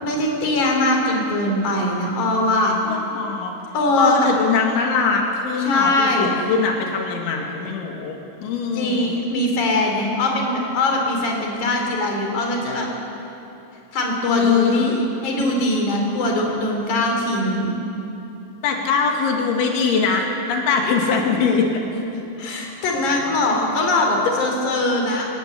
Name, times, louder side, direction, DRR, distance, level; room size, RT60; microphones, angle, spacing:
voice 1, 0.0-2.8 3.7-4.4 5.6-6.3 8.8-12.9 13.9-17.7 22.1-25.3, left 2 dB, 45° left, 1 dB, 5.2 m, -21 dB
voice 2, 2.9-3.5 4.0-9.2 14.3-15.0 18.6-21.7 24.3-24.4, left 5 dB, 90° left, 1 dB, 4.6 m, -22 dB
28.5 x 18.5 x 8.3 m, 2.9 s
omnidirectional pair, 5.2 m